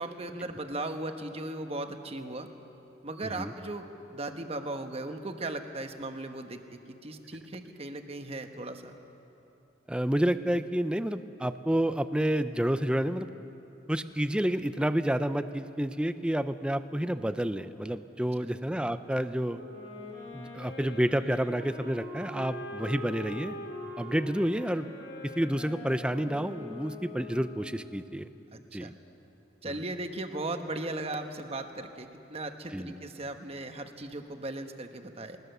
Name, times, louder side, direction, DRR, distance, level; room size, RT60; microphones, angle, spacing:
voice 1, 0.0-2.5 3.0-8.9 28.5-28.9 29.6-35.4, right 2 dB, 35° right, 6 dB, 1.1 m, -37 dB
voice 2, 9.9-13.3 13.9-19.6 20.3-23.6 24.0-24.9 25.2-28.3 28.7-28.9 29.7-29.8 32.7-33.0, right 1 dB, 5° right, 11 dB, 0.5 m, -29 dB
Wind instrument woodwind instrument, 19.5-27.9, left 1 dB, 85° left, 3.8 m, -43 dB
20.5 x 19.0 x 6.8 m, 2.9 s
head